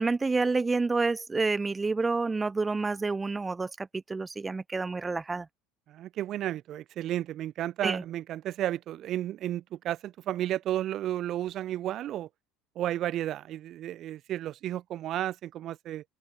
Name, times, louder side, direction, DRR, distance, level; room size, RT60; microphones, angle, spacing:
voice 1, 0.0-5.5 7.8-8.0, right 3 dB, 20° right, 2.2 m, -28 dB
voice 2, 5.9-12.3 12.7-16.0, right 12 dB, 45° right, 4.4 m, -33 dB
open air
figure-of-eight pair, 70°, 0 cm